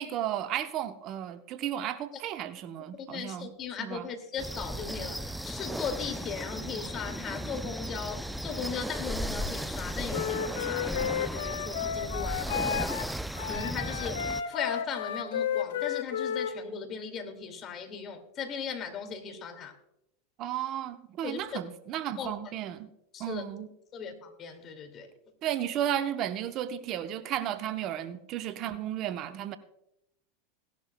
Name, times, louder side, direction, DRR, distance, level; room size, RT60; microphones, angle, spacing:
voice 1, 0.0-3.5 3.8-4.1 20.4-22.9 23.2-23.7 25.4-29.6, right 11 dB, 45° right, 10 dB, 0.8 m, -33 dB
voice 2, 3.0-13.2 13.4-19.8 21.2-21.5 22.2-22.3 23.1-23.4 23.9-25.1, left 6 dB, 40° left, 6 dB, 2.2 m, -38 dB
sound 1, 4.4-14.4, equal, 5° right, 0.4 m, -35 dB
Wind instrument woodwind instrument, 10.1-13.1 13.4-16.5, left 8 dB, 75° left, 1.0 m, -32 dB
17.5 x 11.5 x 2.2 m, 0.83 s
hypercardioid pair, 95°, 0 cm